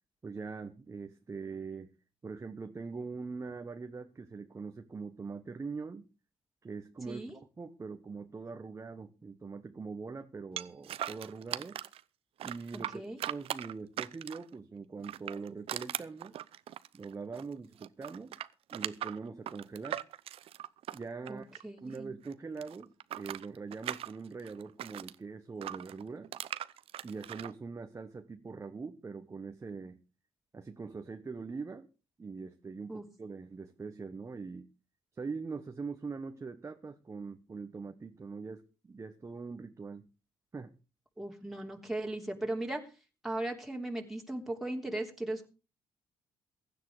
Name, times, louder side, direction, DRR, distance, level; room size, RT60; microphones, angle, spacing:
voice 1, 0.2-1.9 2.2-6.1 6.6-11.8 12.4-16.3 16.9-18.4 18.7-20.0 20.9-21.5 21.8-26.3 27.0-30.0 30.5-31.9 32.2-34.7 35.1-40.1 40.5-40.7, right 4 dB, 30° right, 6 dB, 1.3 m, -42 dB
sound 1, 10.6-12.0 12.4-14.5 15.0-17.5 17.8-22.0 22.2-25.2 25.6-27.5, right 12 dB, 70° right, 0.8 m, -40 dB
voice 2, 12.7-13.2 21.3-22.1 32.9-33.0 41.2-42.8 43.2-45.5, right 1 dB, ahead, 0 dB, 3.4 m, -37 dB
16.0 x 10.5 x 5.0 m, 0.33 s
cardioid pair, 85°, 10 cm